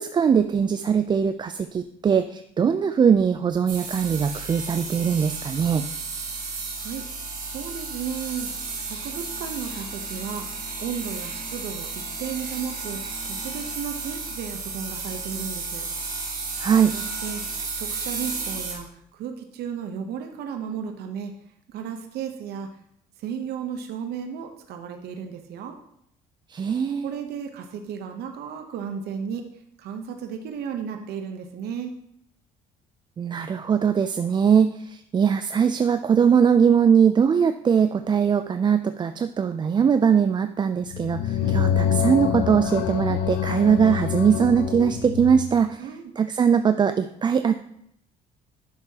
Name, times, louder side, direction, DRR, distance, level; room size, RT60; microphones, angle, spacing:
voice 1, 0.0-5.8 16.6-16.9 26.5-27.1 33.2-45.9 46.2-47.5, right 7 dB, 25° right, 9 dB, 0.3 m, -21 dB
sound 1, 3.7-18.7, right 4 dB, 55° right, 2.4 m, -33 dB
voice 2, 7.4-8.5 8.8-10.5 10.8-15.8 16.9-17.4 17.8-21.3 21.7-22.7 23.2-25.8 27.0-29.5 29.8-31.9 41.4-41.6 45.8-46.1, right 7 dB, 70° right, 5 dB, 0.8 m, -34 dB
sound 2, 40.8-45.5, left 9 dB, 80° left, 0.6 m, -26 dB
10.5 x 6.3 x 2.9 m, 0.75 s
cardioid pair, 110°, 17 cm